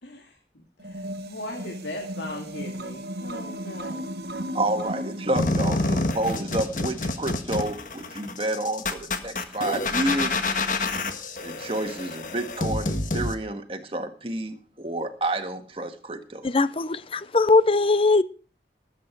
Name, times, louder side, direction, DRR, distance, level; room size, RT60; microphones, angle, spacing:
voice 1, 0.0-4.1, left 2 dB, 85° left, 2.5 m, -38 dB
sound 1, 0.8-7.1, right 1 dB, 65° right, 1.3 m, -36 dB
voice 2, 4.5-10.4 11.4-16.5, right 1 dB, 30° right, 1.7 m, -29 dB
sound 2, 5.4-13.3, left 2 dB, 50° left, 1.5 m, -28 dB
voice 3, 16.4-18.2, left 3 dB, 30° left, 0.6 m, -20 dB
19.5 x 8.6 x 4.6 m
head